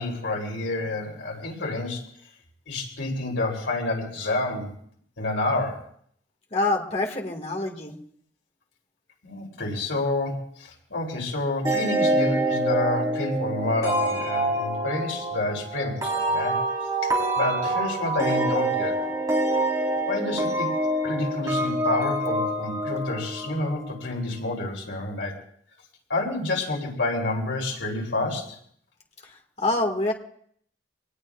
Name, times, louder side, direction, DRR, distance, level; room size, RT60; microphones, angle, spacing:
voice 1, 0.0-2.1 2.7-4.7 5.2-5.9 9.2-16.6 17.0-19.0 20.1-20.7 21.0-25.3 26.1-28.6, left 2 dB, 85° left, -1 dB, 3.6 m, -29 dB
voice 2, 6.5-8.0 29.2-30.1, left 2 dB, 35° left, 1 dB, 2.1 m, -26 dB
sound 1, 11.6-24.1, right 1 dB, 20° right, 4.2 m, -26 dB
25.0 x 19.0 x 2.5 m, 0.62 s
head